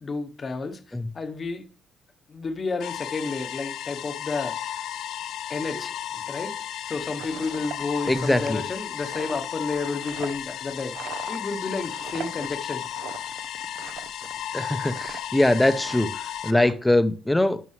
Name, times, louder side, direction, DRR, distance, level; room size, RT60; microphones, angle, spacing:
voice 1, 0.0-1.6 2.3-4.6 5.5-5.9 6.3-6.5 6.9-11.0 11.3-12.8, left 4 dB, 30° left, 0.9 m, -31 dB
sound 1, 2.8-16.5, left 10 dB, 70° left, 0.6 m, -34 dB
sound 2, 6.9-14.4 14.7-15.2 15.5-16.7, right 9 dB, 80° right, 0.6 m, -41 dB
voice 2, 8.0-8.6 14.5-17.6, left 1 dB, 5° left, 0.6 m, -22 dB
11.0 x 6.0 x 3.1 m
cardioid pair, 140°, 0 cm